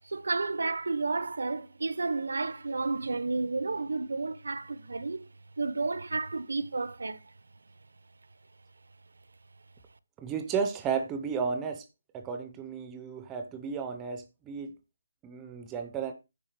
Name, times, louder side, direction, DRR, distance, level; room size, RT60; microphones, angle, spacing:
voice 1, 0.0-5.3 5.6-7.2, right 3 dB, 80° right, 0.8 m, -31 dB
voice 2, 10.2-11.8 12.1-14.7 15.2-16.1, right 6 dB, 10° right, 0.5 m, -33 dB
9.8 x 3.5 x 6.9 m
hypercardioid pair, 180°, 0 cm